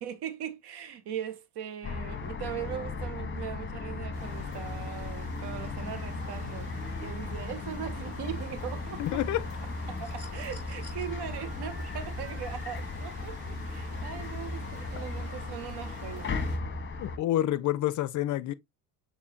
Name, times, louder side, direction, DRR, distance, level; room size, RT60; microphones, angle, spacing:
voice 1, 0.0-9.0 9.9-16.3, right 9 dB, 55° right, 1.1 m, -40 dB
sound 1, 1.8-17.2, left 3 dB, 25° left, 1.0 m, -36 dB
sound 2, 4.1-16.6, right 5 dB, 90° right, 1.3 m, -51 dB
voice 2, 9.0-9.4 17.0-18.5, left 13 dB, 40° left, 0.5 m, -28 dB
sound 3, 10.0-11.0 12.6-12.7, left 1 dB, 10° right, 2.6 m, -52 dB
6.6 x 2.8 x 2.7 m
hypercardioid pair, 65°, 46 cm